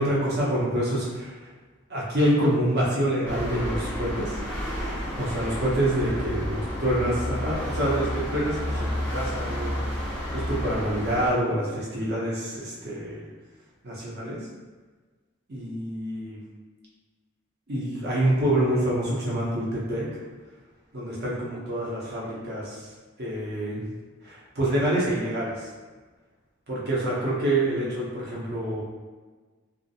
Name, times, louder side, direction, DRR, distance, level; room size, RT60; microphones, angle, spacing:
voice 1, 0.0-1.3 1.9-4.4 5.2-9.8 10.3-13.3 13.8-14.4 15.5-16.4 17.7-20.1 20.9-22.9 23.2-23.8 24.2-25.7 26.7-28.8, right 1 dB, 50° right, -6 dB, 0.7 m, -26 dB
sound 1, 3.3-11.3, equal, 10° left, 0.5 m, -31 dB
2.5 x 2.1 x 2.6 m, 1.4 s
head